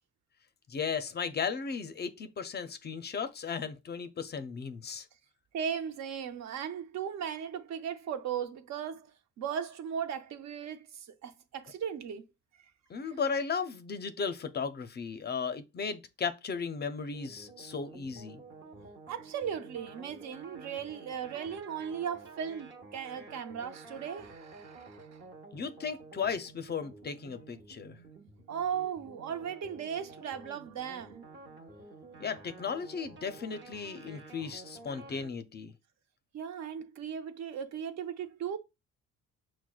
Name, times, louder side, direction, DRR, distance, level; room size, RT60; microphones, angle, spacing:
voice 1, 0.7-5.1 12.9-18.4 25.5-28.0 32.2-35.7, left 5 dB, 35° left, 0.4 m, -35 dB
voice 2, 5.5-12.2 13.1-13.2 18.8-25.2 28.5-31.3 36.3-38.6, right 8 dB, 65° right, 0.6 m, -37 dB
sound 1, 17.1-35.3, right 3 dB, 40° right, 0.9 m, -51 dB
5.9 x 2.1 x 2.3 m
cardioid pair, 90°, 30 cm